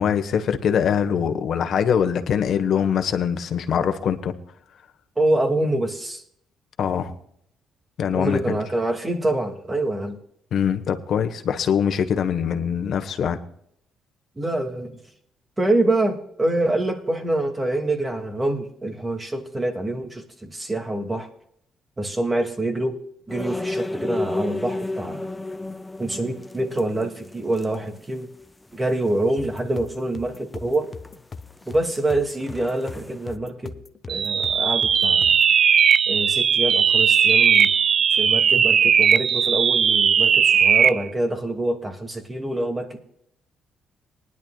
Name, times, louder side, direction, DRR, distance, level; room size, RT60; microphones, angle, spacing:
voice 1, 0.0-4.3 6.8-7.1 8.0-8.6 10.5-13.4, left 8 dB, 65° left, 8 dB, 1.3 m, -23 dB
voice 2, 5.2-6.2 8.1-10.2 14.4-15.0 15.6-21.3 22.0-23.0 23.3-25.3 26.0-28.3 28.7-30.9 31.7-33.8 34.1-35.4 36.1-37.7 38.1-43.0, right 1 dB, 20° right, 5 dB, 2.3 m, -25 dB
sound 1, 23.3-28.1 28.4-28.5 28.7-28.8 30.7-31.1 31.4-33.3, left 2 dB, 10° left, 0.5 m, -32 dB
sound 2, 29.4-35.6, left 5 dB, 35° left, 0.9 m, -40 dB
sound 3, 34.1-41.0, right 7 dB, 55° right, 0.4 m, -18 dB
20.0 x 11.0 x 2.4 m, 0.69 s
cardioid pair, 90°, 0 cm